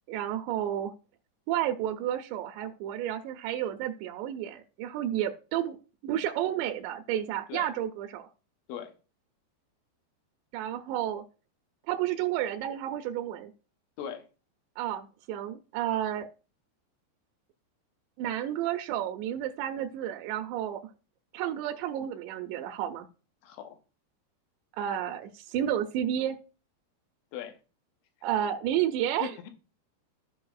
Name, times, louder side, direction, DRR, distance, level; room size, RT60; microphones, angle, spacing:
voice 1, 0.1-0.9 1.5-8.3 10.5-11.2 11.9-13.5 14.8-16.3 18.2-20.8 21.3-23.1 24.7-26.4 28.2-29.4, right 11 dB, 85° right, 5 dB, 2.6 m, -31 dB
voice 2, 23.4-23.8 27.3-27.6 29.2-29.5, left 9 dB, 85° left, 6 dB, 3.3 m, -39 dB
14.5 x 5.3 x 2.4 m, 0.34 s
omnidirectional pair, 5.4 m